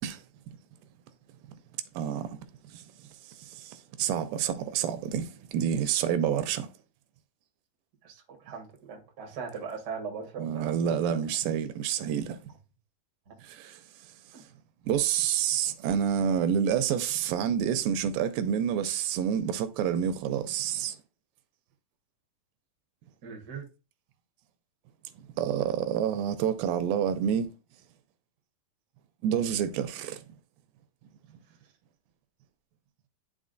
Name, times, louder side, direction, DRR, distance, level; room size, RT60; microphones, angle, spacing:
voice 1, 2.0-2.4 2.7-2.8 3.4-6.7 10.4-12.4 13.4-13.8 14.9-21.0 25.4-27.5 29.2-30.2, right 9 dB, 80° right, 2.2 m, -28 dB
voice 2, 8.0-11.2 13.3-13.4 14.3-14.4 23.2-23.6, right 5 dB, 65° right, 0.9 m, -40 dB
11.0 x 3.8 x 2.5 m
omnidirectional pair, 4.2 m